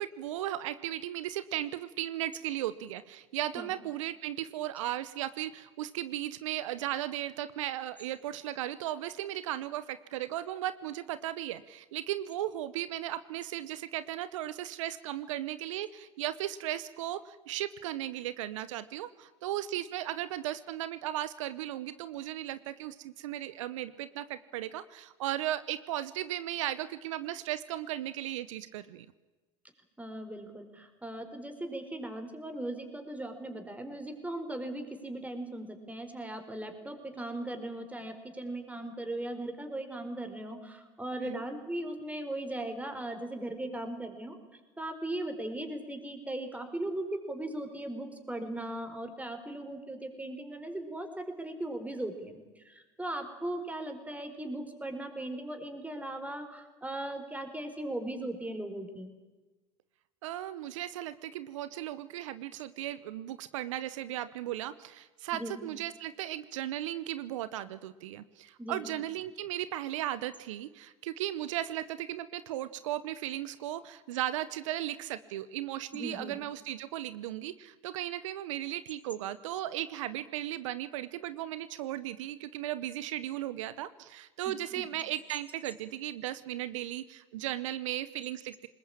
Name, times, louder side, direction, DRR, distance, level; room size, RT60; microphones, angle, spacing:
voice 1, 0.0-29.1 41.2-41.4 60.2-88.7, right 13 dB, 80° right, 15 dB, 0.8 m, -36 dB
voice 2, 30.0-44.4 44.8-59.1 65.3-65.7 68.6-68.9 75.9-76.4 84.5-84.9, right 1 dB, 10° right, 6 dB, 4.5 m, -38 dB
20.5 x 20.5 x 8.8 m, 1.2 s
hypercardioid pair, 80°, 16 cm